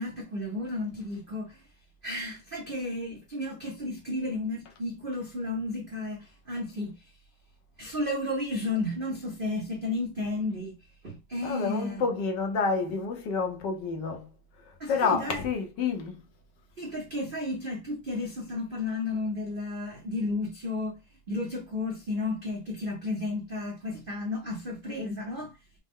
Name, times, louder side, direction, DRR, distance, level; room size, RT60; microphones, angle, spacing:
voice 1, 0.0-1.6 2.0-7.1 7.8-10.8 11.0-12.0 14.8-15.4 16.8-21.0 21.3-25.6, left 2 dB, 70° right, 0.5 m, -33 dB
voice 2, 11.4-14.3 14.9-16.2, left 5 dB, 70° left, 1.3 m, -29 dB
5.3 x 2.0 x 3.5 m
omnidirectional pair, 2.2 m